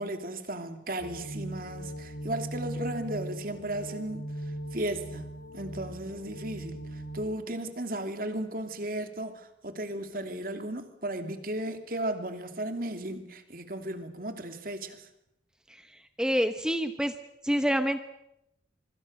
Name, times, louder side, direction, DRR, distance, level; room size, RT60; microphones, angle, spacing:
voice 1, 0.0-4.3 4.7-5.3 5.5-6.8 7.1-15.0, right 1 dB, 50° right, 2.8 m, -35 dB
sound 1, 1.0-7.2, right 1 dB, 70° left, 3.8 m, -39 dB
voice 2, 16.2-17.1 17.4-18.0, equal, 5° right, 0.9 m, -26 dB
26.0 x 25.0 x 6.5 m
head